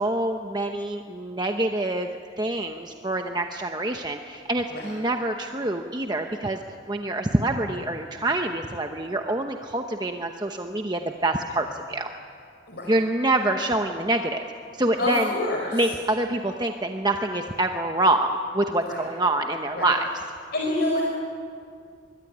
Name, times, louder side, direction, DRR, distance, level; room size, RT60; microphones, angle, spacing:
voice 1, 0.0-2.1 2.4-6.6 6.9-12.1 12.9-14.4 14.8-15.3 15.7-20.1, right 2 dB, 20° right, 4 dB, 0.9 m, -26 dB
voice 2, 15.0-15.9 18.8-19.0 19.7-19.9 20.5-21.0, left 1 dB, 50° left, -1 dB, 4.2 m, -27 dB
25.5 x 22.0 x 10.0 m, 2.3 s
head